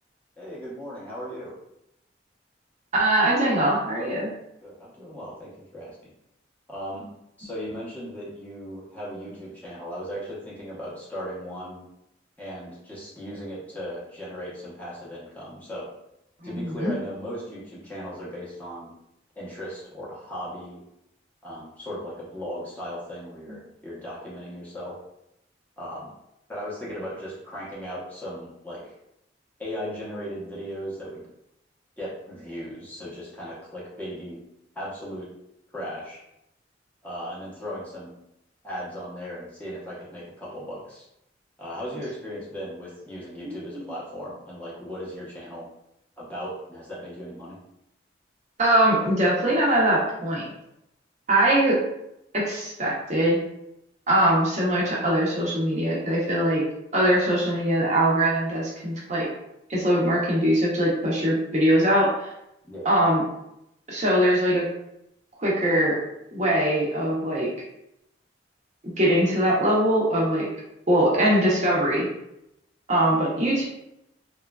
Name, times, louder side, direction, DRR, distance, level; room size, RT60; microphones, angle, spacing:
voice 1, 0.4-1.5 4.6-6.0 6.7-7.1 7.4-11.8 12.4-15.9 16.4-18.9 19.4-20.8 21.4-25.0 25.8-26.1 26.5-28.9 29.6-31.2 32.0-34.4 34.7-35.3 35.7-36.2 37.0-38.1 38.6-41.1 41.6-45.7 46.2-47.6 62.7-62.9, equal, 10° left, -8 dB, 0.7 m, -37 dB
voice 2, 2.9-4.3 16.5-16.9 43.4-43.9 48.6-50.5 51.3-51.8 52.3-53.4 54.1-56.6 56.9-59.3 59.7-62.3 62.8-63.2 63.9-64.6 65.4-66.0 66.3-67.5 68.8-70.5 70.9-72.1 72.9-73.6, right 1 dB, 40° right, -5 dB, 0.6 m, -22 dB
2.9 x 2.3 x 2.2 m, 0.83 s
head